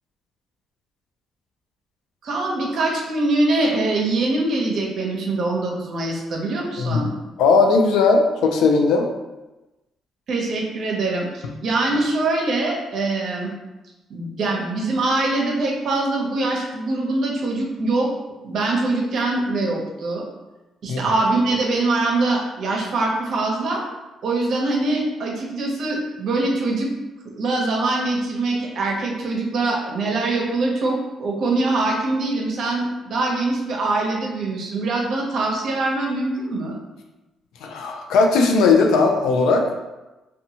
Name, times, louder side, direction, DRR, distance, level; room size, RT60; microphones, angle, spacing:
voice 1, 2.2-7.1 10.3-13.5 14.1-18.1 18.4-20.2 20.8-23.8 24.2-26.9 27.4-36.7, right 2 dB, 65° right, -1 dB, 0.6 m, -23 dB
voice 2, 7.4-9.1 20.9-21.0 37.6-39.7, left 4 dB, 90° left, 3 dB, 0.4 m, -17 dB
2.7 x 2.2 x 2.7 m, 1.0 s
cardioid pair, 90°, 0 cm